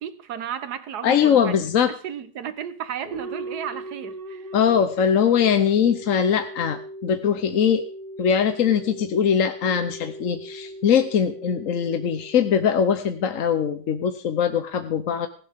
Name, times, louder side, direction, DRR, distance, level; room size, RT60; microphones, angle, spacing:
voice 1, 0.0-1.6 2.0-4.5, right 8 dB, 60° right, 1.6 m, -33 dB
voice 2, 1.0-1.9 4.5-7.8 8.2-15.3, left 7 dB, 55° left, 1.1 m, -21 dB
sound 1, 3.0-13.7, right 1 dB, 30° right, 1.4 m, -39 dB
17.5 x 16.0 x 3.6 m
omnidirectional pair, 2.0 m